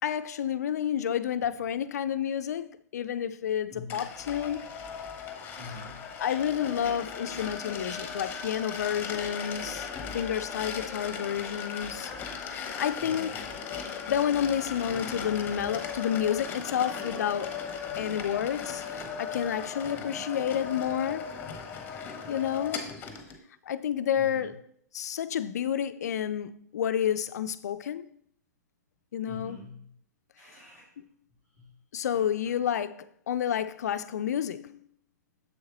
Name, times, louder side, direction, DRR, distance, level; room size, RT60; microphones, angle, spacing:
voice 1, 0.0-4.6 6.2-9.9 10.1-13.4 14.1-17.6 18.0-21.2 21.9-22.9 23.7-24.6 24.9-28.0 29.1-29.6 31.0-31.1 31.9-34.8, left 9 dB, 65° left, 0.4 m, -30 dB
voice 2, 3.7-4.0 5.6-6.0 13.0-13.4 19.9-20.2 24.1-24.5 29.3-30.0 30.4-30.9 31.6-31.7 32.1-32.6, left 2 dB, 35° right, 2.2 m, -46 dB
sound 1, 3.9-23.4, left 6 dB, 20° left, 0.9 m, -37 dB
7.0 x 6.5 x 3.0 m
hypercardioid pair, 120°, 9 cm